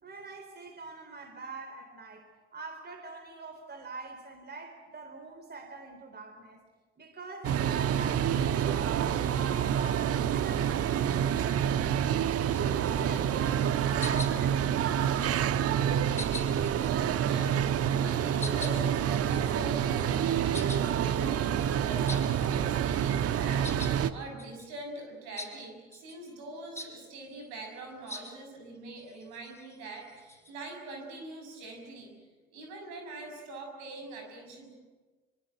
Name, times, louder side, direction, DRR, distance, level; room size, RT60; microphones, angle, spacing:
voice 1, 0.0-6.7 7.0-12.3 12.7-15.5, right 3 dB, 35° right, 6 dB, 3.9 m, -44 dB
sound 1, 7.4-24.1, right 9 dB, 50° right, 1.3 m, -28 dB
sound 2, 12.3-12.6 13.0-13.2 13.4-13.7 14.0-14.6 15.0-15.6 16.1-17.0 17.8-18.0 18.4-22.7 22.9-24.0 24.4-24.7 25.4-25.5 25.9-26.2 26.7-26.9 28.1-28.3 29.0-30.5, left 2 dB, 10° left, 7.3 m, -43 dB
voice 2, 17.2-32.1 32.5-34.7, right 2 dB, 70° right, 3 dB, 6.5 m, -43 dB
24.5 x 24.0 x 7.9 m, 1.3 s
hypercardioid pair, 55°, 30 cm